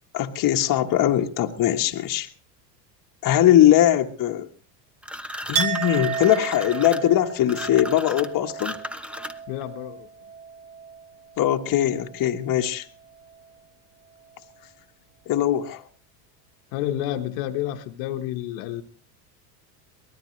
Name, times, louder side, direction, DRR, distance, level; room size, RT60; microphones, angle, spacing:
voice 1, 0.1-2.3 3.2-4.5 5.5-8.8 11.4-12.8 15.3-15.8, left 12 dB, 40° left, 4 dB, 1.4 m, -21 dB
sound 1, 5.0-9.6, equal, ahead, 1.0 m, -36 dB
Chink clink, 5.5-11.1 11.4-12.2, right 7 dB, 70° right, 2.0 m, -32 dB
voice 2, 9.5-10.1 16.7-18.8, left 12 dB, 70° left, 5 dB, 1.4 m, -29 dB
23.5 x 18.5 x 3.2 m, 0.42 s
hypercardioid pair, 90°, 48 cm